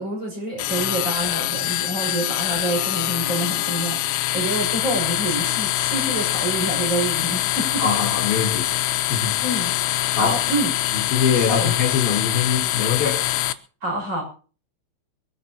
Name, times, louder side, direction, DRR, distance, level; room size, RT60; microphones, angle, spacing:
voice 1, 0.0-7.8 9.4-9.7 10.1-10.7 11.5-11.7 13.8-14.2, right 2 dB, 20° right, 6.7 m, -27 dB
sound 1, 0.6-13.5, left 15 dB, 85° left, 3.5 m, -24 dB
voice 2, 7.8-9.4 10.1-10.4 11.1-13.3, left 7 dB, 60° left, 3.0 m, -23 dB
23.5 x 14.0 x 2.9 m
omnidirectional pair, 5.8 m